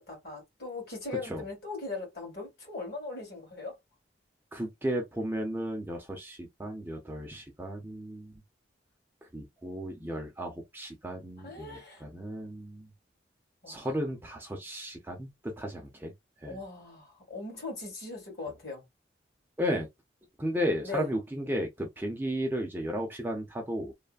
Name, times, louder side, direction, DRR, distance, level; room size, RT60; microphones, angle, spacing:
voice 1, 0.0-3.8 11.4-12.0 13.6-13.9 16.5-18.8 20.8-21.2, left 3 dB, 55° left, 1.8 m, -39 dB
voice 2, 4.5-8.3 9.3-12.9 13.7-16.1 16.4-16.6 19.6-19.9 20.4-23.9, equal, 10° right, 0.6 m, -34 dB
3.2 x 2.1 x 2.3 m
head